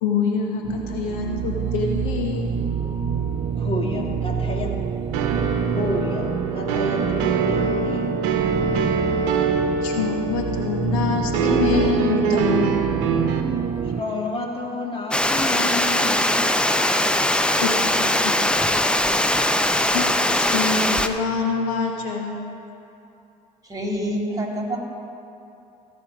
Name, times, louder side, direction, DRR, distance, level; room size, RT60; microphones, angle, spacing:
voice 1, 0.0-2.5 9.8-12.8 17.6-18.3 19.9-20.1 20.3-22.4, left 5 dB, 80° left, 2 dB, 1.1 m, -25 dB
sound 1, 0.6-14.0, right 6 dB, 40° right, 0.8 m, -27 dB
voice 2, 3.5-4.8 5.6-8.1 13.8-16.5, left 1 dB, 30° left, 0 dB, 2.1 m, -30 dB
sound 2, 5.1-13.4, right 5 dB, 75° right, 0.9 m, -24 dB
Water, 15.1-21.1, left 1 dB, 5° left, 0.6 m, -20 dB
voice 3, 23.7-24.8, equal, 20° right, 0 dB, 2.5 m, -26 dB
15.5 x 5.3 x 6.0 m, 2.8 s
hypercardioid pair, 65°, 18 cm